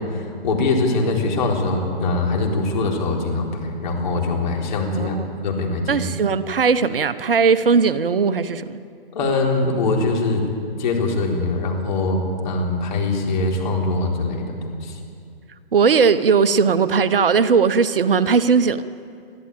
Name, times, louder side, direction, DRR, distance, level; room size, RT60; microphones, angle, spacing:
voice 1, 0.0-5.2 5.4-6.0 9.1-10.4 10.8-14.9, left 3 dB, 50° left, 0 dB, 4.1 m, -22 dB
voice 2, 4.9-5.2 5.9-8.7 15.7-18.8, right 5 dB, 60° right, 13 dB, 1.0 m, -18 dB
22.5 x 14.0 x 8.7 m, 2.4 s
figure-of-eight pair, 135°, 31 cm